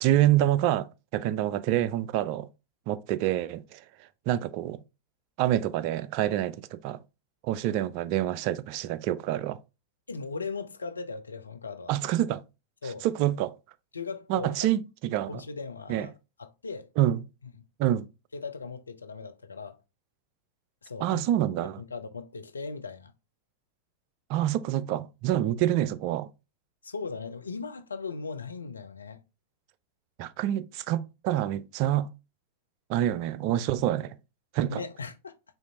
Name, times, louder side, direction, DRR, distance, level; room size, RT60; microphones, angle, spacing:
voice 1, 0.0-2.5 2.9-3.8 4.3-4.8 5.4-7.0 7.4-9.6 11.9-12.4 13.0-13.5 14.3-15.4 15.9-16.1 17.0-17.2 17.8-18.1 21.0-21.8 24.3-26.3 30.2-32.1 32.9-34.1 34.5-34.8, right 12 dB, 45° right, 0.3 m, -27 dB
voice 2, 10.1-11.9 12.8-13.1 13.9-14.7 15.3-16.1 16.4-16.9 18.3-19.8 20.8-21.2 21.8-23.1 26.8-29.2 34.7-35.3, left 4 dB, 75° left, 0.5 m, -38 dB
5.6 x 2.5 x 2.7 m
figure-of-eight pair, 90°, 0 cm